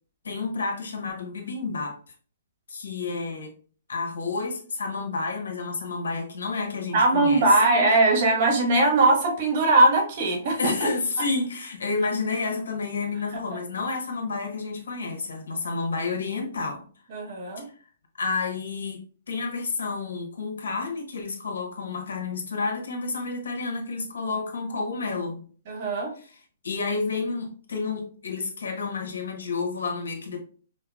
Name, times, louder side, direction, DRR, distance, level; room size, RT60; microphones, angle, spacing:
voice 1, 0.2-2.0 2.7-3.5 3.9-7.7 10.6-16.8 17.6-17.7 18.2-25.4 26.2-26.4 26.6-30.4, left 4 dB, 90° left, 2 dB, 1.0 m, -30 dB
voice 2, 6.9-10.6 17.1-17.6 25.7-26.1, right 2 dB, 45° right, 2 dB, 1.2 m, -20 dB
5.3 x 2.0 x 2.3 m, 0.42 s
hypercardioid pair, 150°, 0 cm